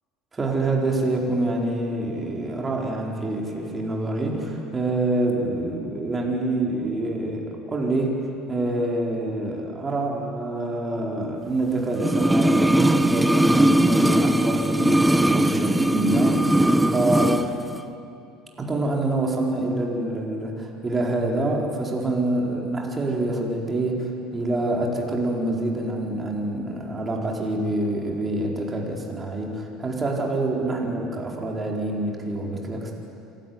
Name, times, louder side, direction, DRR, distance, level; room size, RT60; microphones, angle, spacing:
voice 1, 0.3-16.4 16.9-17.5 18.6-32.9, right 2 dB, 25° right, -1 dB, 4.5 m, -26 dB
sound 1, 12.0-17.5 17.7-17.8, right 1 dB, 5° right, 1.0 m, -19 dB
28.0 x 12.5 x 9.5 m, 2.5 s
hypercardioid pair, 75°, 0 cm